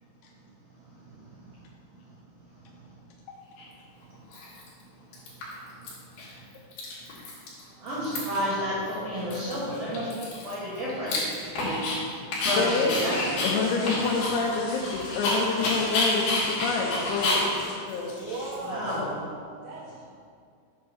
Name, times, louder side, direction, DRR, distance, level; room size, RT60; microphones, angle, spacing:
Dog, 3.6-3.7 4.3-4.8 5.1-5.9 6.2-6.3 6.5-7.6 7.9-8.5 8.9-9.0 9.3-12.0 12.3-18.9, left 2 dB, 65° left, 3.3 m, -30 dB
voice 1, 7.8-10.1 10.4-11.3 11.5-11.9 12.4-13.4 18.6-19.1, equal, 60° right, -10 dB, 2.5 m, -31 dB
voice 2, 12.4-13.1 13.4-18.1 18.9-19.2, left 4 dB, 90° left, -1 dB, 3.0 m, -28 dB
sound 1, 12.4-17.7, left 1 dB, 45° left, 2.0 m, -42 dB
voice 3, 18.1-19.3 19.6-19.8, right 2 dB, 80° right, -7 dB, 3.2 m, -36 dB
7.7 x 3.7 x 6.0 m, 2.3 s
omnidirectional pair, 5.2 m